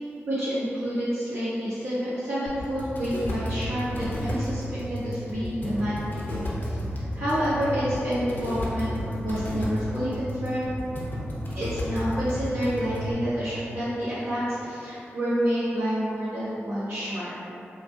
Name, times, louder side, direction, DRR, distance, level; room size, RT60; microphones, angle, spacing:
voice 1, 0.3-10.7 11.5-17.3, equal, 70° right, -13 dB, 1.1 m, -29 dB
sound 1, 2.5-13.1, equal, 50° left, 0.8 m, -32 dB
3.7 x 2.1 x 4.3 m, 2.7 s
cardioid pair, 80°, 4 cm